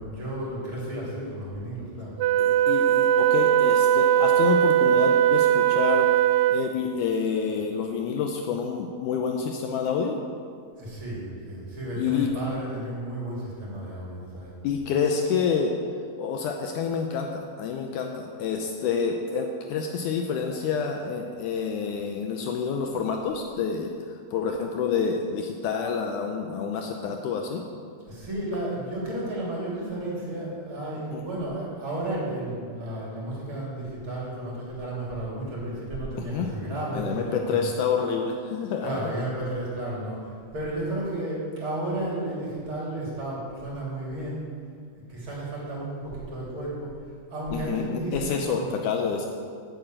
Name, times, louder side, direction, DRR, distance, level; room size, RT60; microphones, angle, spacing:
voice 1, 0.0-2.2 10.8-14.5 28.1-37.6 38.8-44.5 44.9-46.9 47.3-48.7, right 1 dB, 35° right, -5 dB, 3.7 m, -33 dB
Wind instrument woodwind instrument, 2.2-6.8, right 11 dB, 85° right, 2.6 m, -20 dB
voice 2, 2.4-6.1 6.5-10.2 12.0-12.3 14.6-15.7 16.2-27.6 31.1-31.2 36.3-36.5 36.9-39.0 47.5-49.3, left 6 dB, 85° left, 3 dB, 1.7 m, -28 dB
8.8 x 8.0 x 8.8 m, 2.2 s
omnidirectional pair, 4.5 m